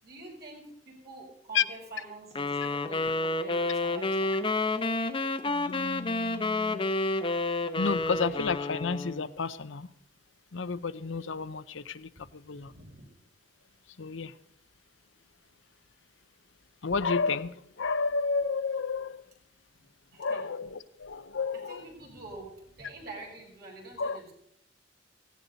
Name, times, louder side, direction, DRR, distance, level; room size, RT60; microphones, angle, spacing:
voice 1, 0.0-4.4 7.8-7.9 8.2-8.3 12.2-13.1 20.1-20.5 21.5-24.3, right 2 dB, 55° right, -2 dB, 6.7 m, -46 dB
sound 1, 2.4-9.3, left 2 dB, 30° left, 0.8 m, -30 dB
voice 2, 5.5-6.9 7.8-9.9 10.5-12.7 14.0-14.3 16.8-19.2 20.2-21.8 24.0-24.2, left 5 dB, 80° left, 13 dB, 0.7 m, -31 dB
17.0 x 16.5 x 4.0 m, 0.73 s
head